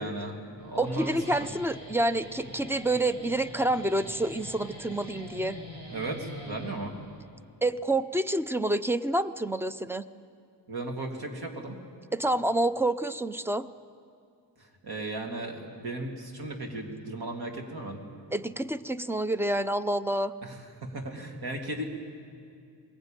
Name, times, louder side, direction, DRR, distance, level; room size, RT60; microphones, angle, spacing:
voice 1, 0.0-1.5 5.9-6.9 10.7-11.8 14.8-18.0 20.4-21.8, right 2 dB, 55° right, 3 dB, 2.8 m, -36 dB
Guitar, 0.6-7.2, left 1 dB, 80° right, 5.9 m, -44 dB
voice 2, 0.8-5.6 7.6-10.0 12.1-13.7 18.3-20.3, right 1 dB, 5° right, 13 dB, 0.5 m, -28 dB
22.0 x 18.0 x 9.0 m, 2.4 s
wide cardioid pair, 110°, 43 cm